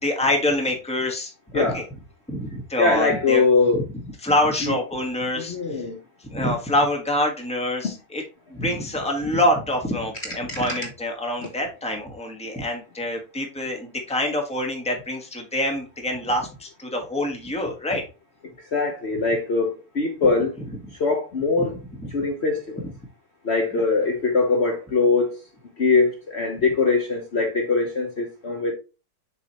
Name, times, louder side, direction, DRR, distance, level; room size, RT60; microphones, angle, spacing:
voice 1, 0.0-1.8 2.3-3.4 3.7-5.9 6.2-8.2 8.5-18.0 21.6-21.7 23.7-23.8, left 1 dB, 5° left, 1.2 m, -26 dB
voice 2, 2.8-3.8 4.6-4.7 5.4-6.0 10.5-10.6 18.7-20.5 21.0-21.7 22.1-22.8 23.4-25.4 25.8-28.7, left 4 dB, 45° left, 1.1 m, -22 dB
6.9 x 4.8 x 2.9 m
omnidirectional pair, 1.7 m